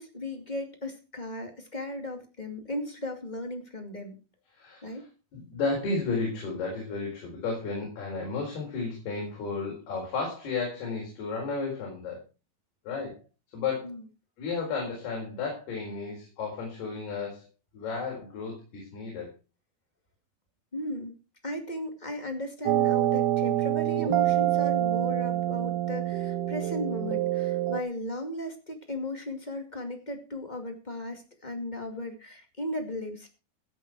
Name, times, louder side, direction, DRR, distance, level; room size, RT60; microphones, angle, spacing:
voice 1, 0.0-4.1 4.8-5.1 13.8-14.0 20.7-21.2 21.4-33.3, left 1 dB, 20° left, 4 dB, 1.2 m, -36 dB
voice 2, 4.5-5.0 5.3-12.2 12.8-13.1 13.5-13.9 14.4-17.4 17.7-19.3, left 4 dB, 75° left, -1 dB, 6.3 m, -33 dB
sound 1, 22.7-27.8, right 14 dB, 85° right, 2.9 m, -26 dB
16.0 x 8.9 x 4.7 m, 0.32 s
omnidirectional pair, 4.6 m